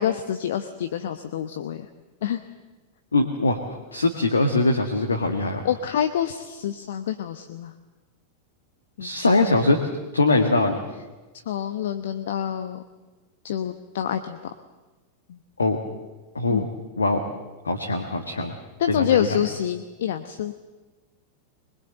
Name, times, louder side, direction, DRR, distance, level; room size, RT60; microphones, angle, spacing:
voice 1, 0.0-1.9 2.2-2.4 5.6-7.7 9.0-9.1 11.5-12.8 13.4-14.4 15.3-15.4 16.5-16.7 18.8-20.5, left 9 dB, 60° left, 9 dB, 1.0 m, -27 dB
voice 2, 3.1-3.6 3.9-5.6 9.0-9.8 10.1-10.8 15.6-15.8 16.3-16.7 17.0-17.2 17.6-18.6 18.9-19.3, left 2 dB, 75° left, 3 dB, 1.8 m, -22 dB
23.5 x 21.5 x 7.9 m, 1.2 s
figure-of-eight pair, 90°, 0 cm